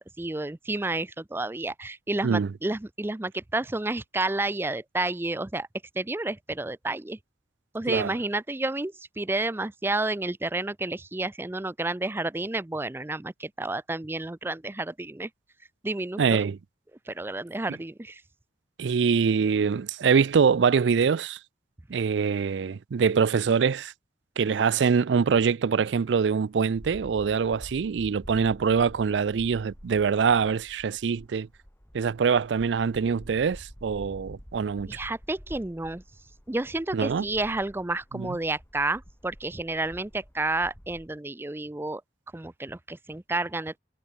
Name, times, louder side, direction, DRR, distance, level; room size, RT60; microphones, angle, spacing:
voice 1, 0.2-5.7 6.0-7.2 7.7-15.3 15.8-16.4 17.1-18.2 34.9-36.0 36.5-42.0 42.3-43.8, right 2 dB, 15° right, 0.5 m, -30 dB
voice 2, 16.2-16.6 18.8-21.4 21.9-23.9 24.4-31.5 31.9-35.0 36.9-37.3 38.1-38.3, right 6 dB, 85° right, 0.4 m, -24 dB
sound 1, 26.0-41.1, equal, 15° left, 4.4 m, -48 dB
head